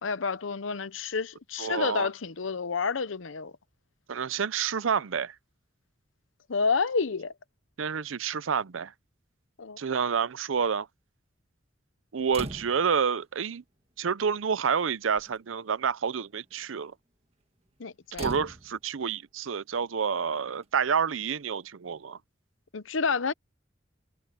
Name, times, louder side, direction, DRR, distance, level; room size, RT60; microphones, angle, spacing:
voice 1, 0.0-3.5 6.5-7.3 9.6-9.8 17.8-18.3 22.7-23.3, left 5 dB, 80° left, 0.8 m, -29 dB
voice 2, 1.6-2.1 4.1-5.3 7.8-8.9 9.8-10.9 12.1-13.6 14.0-16.9 18.2-22.2, right 6 dB, 90° right, 0.6 m, -29 dB
sound 1, 12.3-13.0 14.1-14.2 14.6-14.9 15.2-15.4 18.1-19.0 20.6-20.7, right 2 dB, 30° right, 1.8 m, -40 dB
head